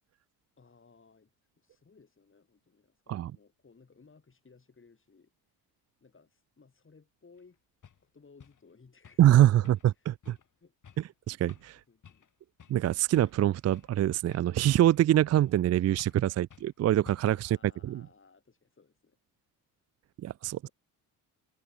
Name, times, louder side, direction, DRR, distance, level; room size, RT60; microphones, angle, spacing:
voice 1, 0.6-5.3 6.0-7.6 8.0-10.1 10.6-11.0 11.5-11.6 11.9-12.3 17.3-19.2 20.6-20.7, left 4 dB, 30° left, 6.8 m, -60 dB
sound 1, 7.4-7.5 7.8-8.0 8.4-8.6 9.0-9.3 9.6-10.0 10.2-10.5 10.8-11.1 11.5-11.8 12.0-12.3 12.6-12.8 13.1-14.0 14.3-15.1 15.3-15.7 16.0-16.2 16.5-16.7 17.1-17.4, left 7 dB, 50° left, 5.0 m, -55 dB
voice 2, 9.2-9.8 10.1-10.4 11.3-11.8 12.7-17.6 17.8-18.0 20.2-20.7, right 12 dB, 40° right, 0.4 m, -24 dB
cardioid pair, 80°, 40 cm